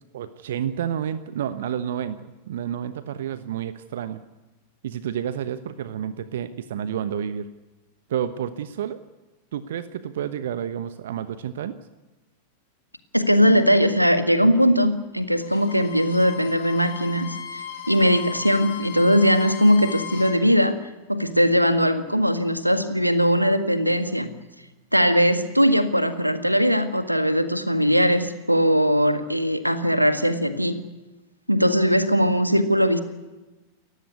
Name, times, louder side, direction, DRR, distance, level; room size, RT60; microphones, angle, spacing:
voice 1, 0.0-2.2 2.5-4.2 4.8-7.5 8.1-9.0 9.5-11.8, right 9 dB, 60° right, 13 dB, 1.1 m, -30 dB
voice 2, 13.1-20.8 21.1-24.3 24.9-30.8 31.5-33.0, equal, 90° right, 10 dB, 1.8 m, -20 dB
Bowed string instrument, 15.4-20.4, left 10 dB, 55° left, 4.6 m, -37 dB
29.0 x 15.0 x 9.5 m, 1.1 s
figure-of-eight pair, 90°, 0 cm